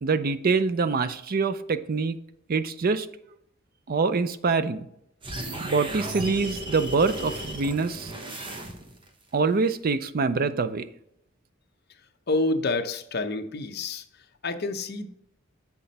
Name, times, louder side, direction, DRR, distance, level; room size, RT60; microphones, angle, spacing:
voice 1, 0.0-2.2 2.5-3.1 3.9-4.9 5.6-8.1 9.3-10.9, right 4 dB, 45° right, 13 dB, 0.5 m, -25 dB
sound 1, 5.2-9.1, right 1 dB, 25° right, 0.9 m, -35 dB
voice 2, 12.3-14.0 14.4-15.1, left 2 dB, 50° left, 6 dB, 0.7 m, -28 dB
7.5 x 5.9 x 4.0 m, 0.76 s
head